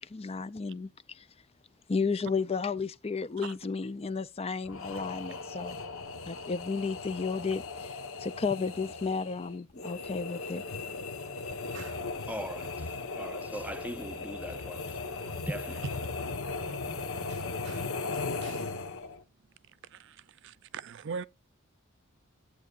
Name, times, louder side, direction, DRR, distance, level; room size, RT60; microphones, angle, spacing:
voice 1, 0.1-1.3 1.9-5.8 6.3-10.6, left 4 dB, 30° left, 0.4 m, -33 dB
sound 1, 4.7-19.2, left 3 dB, 75° left, 1.3 m, -37 dB
voice 2, 12.3-12.9 13.1-15.9, equal, 5° right, 0.7 m, -40 dB
voice 3, 20.7-21.3, right 5 dB, 60° right, 0.5 m, -38 dB
13.5 x 8.4 x 2.5 m
head